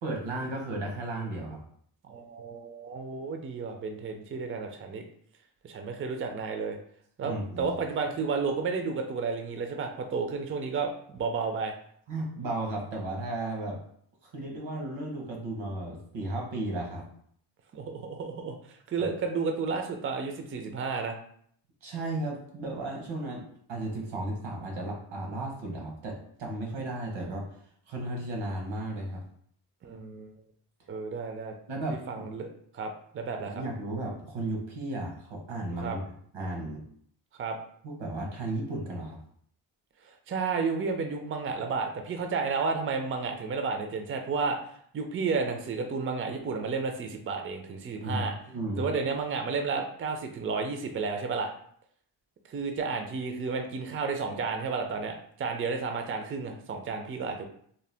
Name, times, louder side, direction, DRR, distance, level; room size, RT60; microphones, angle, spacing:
voice 1, 0.0-1.6 7.2-7.8 12.1-13.8 14.2-17.1 21.8-27.4 27.9-29.2 31.7-32.3 33.5-36.0 36.3-36.8 37.8-39.2 48.0-49.0, right 2 dB, 85° right, 0 dB, 1.0 m, -34 dB
voice 2, 2.1-5.0 5.6-6.8 7.2-11.7 17.7-21.1 29.8-30.3 30.9-31.5 31.9-32.5 32.7-33.6 35.8-36.0 37.4-37.6 40.3-44.6 44.9-48.3 48.8-51.5 52.5-57.5, right 4 dB, 30° right, 4 dB, 0.4 m, -32 dB
2.8 x 2.1 x 3.3 m, 0.62 s
cardioid pair, 75°, 46 cm